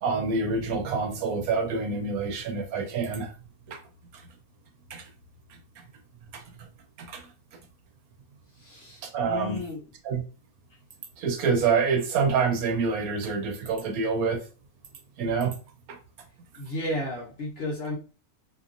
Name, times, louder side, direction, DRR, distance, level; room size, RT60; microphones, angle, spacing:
voice 1, 0.0-3.3 3.7-3.8 4.9-5.0 5.8-5.9 6.3-6.4 7.0-7.2 9.0-9.6 10.0-10.2 11.2-14.4 15.2-15.5 15.9-16.0, right 5 dB, 75° right, 1.0 m, -27 dB
voice 2, 8.6-9.8 16.5-18.0, left 1 dB, 45° left, 1.0 m, -33 dB
2.9 x 2.4 x 2.5 m
omnidirectional pair, 1.7 m